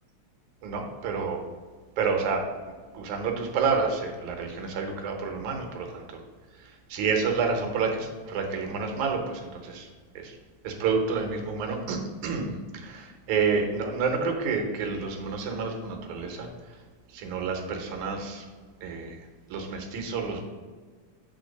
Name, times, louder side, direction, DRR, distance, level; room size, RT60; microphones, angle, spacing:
voice 1, 0.6-1.4 2.0-2.5 2.9-6.2 6.6-9.9 10.2-10.4 10.6-16.5 17.1-18.4 18.8-19.2 19.5-20.4, right 5 dB, 90° right, 2 dB, 2.5 m, -29 dB
8.9 x 3.7 x 5.2 m, 1.5 s
omnidirectional pair, 3.3 m